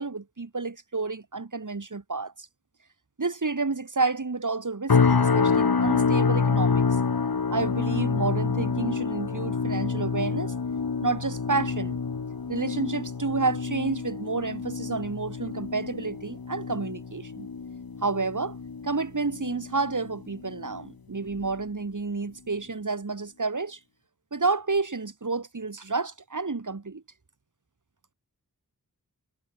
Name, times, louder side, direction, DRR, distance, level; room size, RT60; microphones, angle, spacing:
voice 1, 0.0-2.3 3.2-6.8 7.5-10.5 11.0-12.0 12.5-17.5 18.0-18.6 18.8-23.8 24.3-27.0, right 3 dB, 55° right, 3.2 m, -30 dB
sound 1, 4.9-20.1 20.4-20.8 21.3-21.5, left 5 dB, 70° left, 2.1 m, -27 dB
cardioid pair, 40°, 37 cm